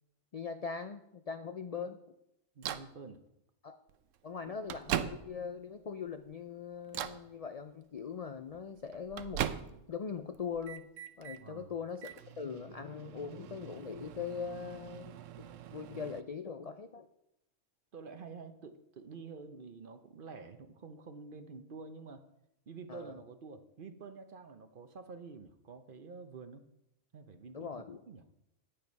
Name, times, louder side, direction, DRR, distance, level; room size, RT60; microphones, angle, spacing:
voice 1, 0.3-2.0 3.6-3.8 4.2-9.5 9.9-10.9 11.2-17.1 22.9-23.1 27.5-28.0, left 6 dB, 50° left, 9 dB, 0.4 m, -41 dB
voice 2, 2.5-3.2 4.5-4.6 11.4-11.7 17.9-22.3 22.7-26.6 27.1-27.7 28.1-28.2, right 4 dB, 50° right, 9 dB, 0.9 m, -48 dB
Microwave oven, 2.6-2.9 3.9-4.0 4.4-5.6 6.1-6.4 6.9-7.3 8.5-10.0 10.3-11.4 12.0-16.2, right 10 dB, 80° right, 1.0 m, -40 dB
9.0 x 8.8 x 5.3 m, 0.84 s
omnidirectional pair, 1.3 m